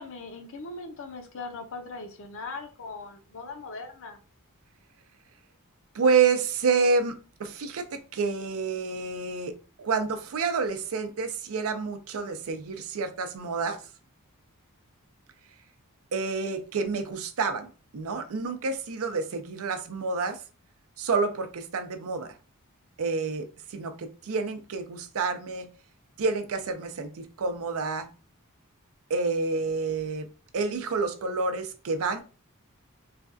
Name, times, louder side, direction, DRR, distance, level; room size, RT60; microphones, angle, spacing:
voice 1, 0.0-4.2, left 3 dB, 65° left, 0.6 m, -40 dB
voice 2, 5.9-9.5 9.8-13.8 16.1-17.7 17.9-20.4 21.0-22.3 23.0-25.7 26.2-28.1 29.1-30.3 30.5-32.2, right 4 dB, 70° right, 0.5 m, -28 dB
3.2 x 2.3 x 2.6 m
head